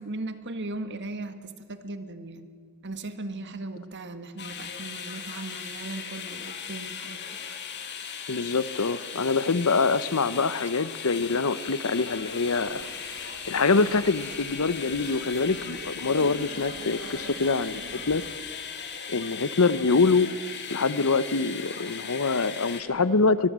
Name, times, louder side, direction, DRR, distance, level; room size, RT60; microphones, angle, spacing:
voice 1, 0.0-2.5 2.8-7.2, right 2 dB, 55° right, 10 dB, 1.7 m, -37 dB
sound 1, 4.4-22.8, left 7 dB, 50° left, 2.6 m, -38 dB
voice 2, 8.3-12.8 13.2-18.2 19.1-20.3 20.7-23.5, left 4 dB, 75° left, 16 dB, 0.9 m, -25 dB
sound 2, 11.8-18.3, right 3 dB, 70° right, 1.7 m, -45 dB
23.5 x 22.0 x 7.5 m, 2.2 s
head